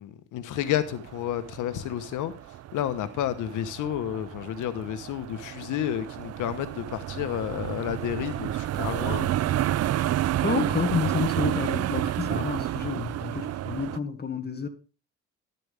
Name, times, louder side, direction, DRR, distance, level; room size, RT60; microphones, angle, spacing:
voice 1, 0.0-2.3 2.7-9.6, left 11 dB, 85° left, 1.2 m, -31 dB
sound 1, 0.6-14.0, right 13 dB, 55° right, 0.5 m, -31 dB
voice 2, 10.4-14.7, left 5 dB, 35° left, 1.9 m, -29 dB
12.0 x 12.0 x 3.5 m
cardioid pair, 90°, 30 cm